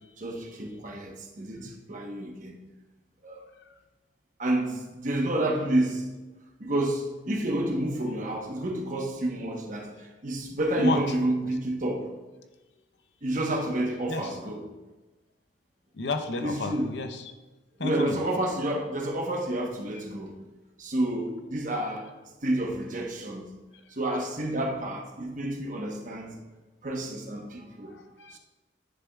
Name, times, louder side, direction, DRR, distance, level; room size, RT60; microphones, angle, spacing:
voice 1, 0.2-2.6 3.2-3.4 4.4-6.1 6.6-12.1 13.2-14.6 16.4-17.0 17.8-20.4 20.8-22.1 22.4-23.5 23.9-26.3 26.8-27.9 28.3-28.4, right 1 dB, 45° right, 1.0 m, -29 dB
voice 2, 15.9-17.3 17.8-18.2 27.9-28.4, left 3 dB, 70° left, 0.7 m, -32 dB
10.5 x 6.9 x 2.3 m
head